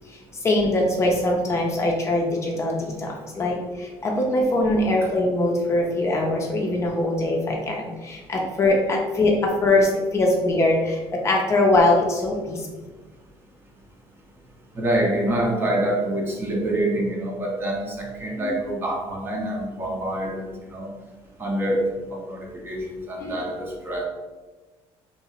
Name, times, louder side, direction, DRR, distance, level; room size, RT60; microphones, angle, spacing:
voice 1, 0.1-12.7 18.4-18.5 23.2-23.4, left 2 dB, 25° left, 0 dB, 0.5 m, -22 dB
voice 2, 14.7-20.9 21.4-21.8 22.1-24.0, right 1 dB, 20° right, 0 dB, 0.6 m, -26 dB
2.9 x 2.8 x 4.2 m, 1.2 s
cardioid pair, 160°, 11 cm